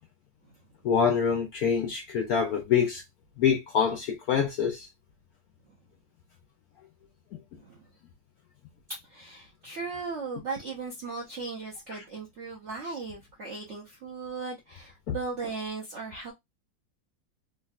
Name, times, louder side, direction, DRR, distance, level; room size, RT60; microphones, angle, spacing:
voice 1, 0.8-3.0 3.4-4.9 15.1-15.2, left 7 dB, 75° left, 0.8 m, -25 dB
voice 2, 8.9-16.3, right 4 dB, 70° right, 0.6 m, -37 dB
3.6 x 2.4 x 2.3 m
omnidirectional pair, 2.1 m